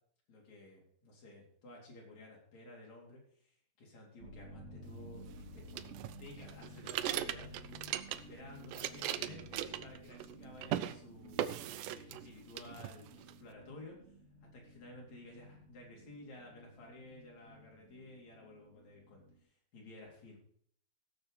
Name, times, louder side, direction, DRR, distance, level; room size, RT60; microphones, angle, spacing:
voice 1, 0.3-5.8 6.2-11.4 11.8-14.0 14.5-20.4, left 2 dB, 50° left, -2 dB, 4.9 m, -54 dB
sound 1, 4.2-19.4, right 1 dB, 25° right, 1.8 m, -54 dB
sound 2, 5.8-8.4 8.6-10.3 10.6-10.9 11.4-12.3 12.6-13.3, right 12 dB, 75° right, 2.0 m, -38 dB
17.0 x 6.8 x 5.1 m, 0.63 s
omnidirectional pair, 4.1 m